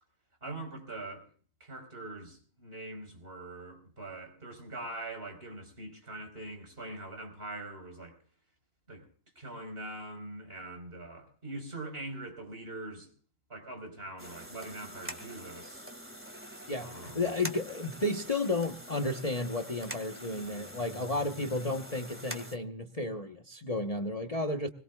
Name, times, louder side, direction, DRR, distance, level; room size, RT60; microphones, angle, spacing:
voice 1, 0.4-1.3 1.6-8.2 8.9-9.0 9.3-13.1 13.5-15.8 16.8-17.3, right 2 dB, 50° right, 4.8 m, -43 dB
sound 1, 14.2-22.6, right 1 dB, 10° right, 1.8 m, -45 dB
voice 2, 16.7-24.7, left 2 dB, 30° left, 1.1 m, -33 dB
22.0 x 21.0 x 2.3 m
omnidirectional pair, 1.3 m